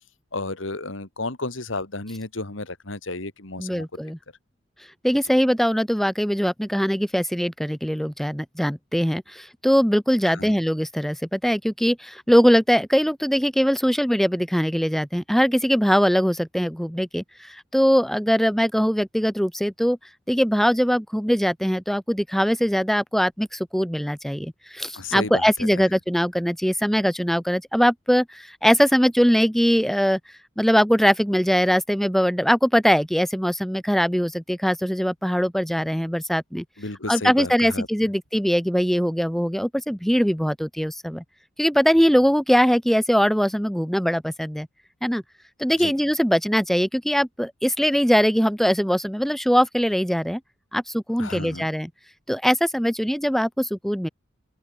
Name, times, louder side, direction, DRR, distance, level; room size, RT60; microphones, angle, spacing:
voice 1, 0.3-3.9 10.3-10.6 24.9-25.8 36.8-37.9 45.8-45.9 51.2-51.7, left 3 dB, 85° left, 2.8 m, -32 dB
voice 2, 3.6-4.2 5.0-20.0 20.3-30.2 30.6-36.6 37.1-41.2 41.6-44.7 45.0-45.2 45.6-50.4 50.7-51.9 52.3-54.1, equal, ahead, 1.7 m, -21 dB
open air
head